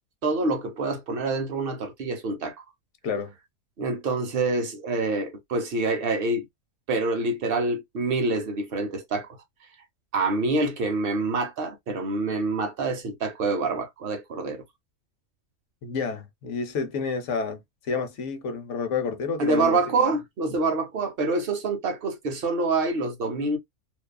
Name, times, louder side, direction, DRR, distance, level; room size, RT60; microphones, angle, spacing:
voice 1, 0.2-2.6 3.8-6.5 6.9-9.3 10.1-14.6 19.4-23.6, right 3 dB, 55° right, 0.7 m, -26 dB
voice 2, 15.8-20.1, left 5 dB, 65° left, 0.9 m, -30 dB
2.6 x 2.3 x 2.2 m
omnidirectional pair, 1.5 m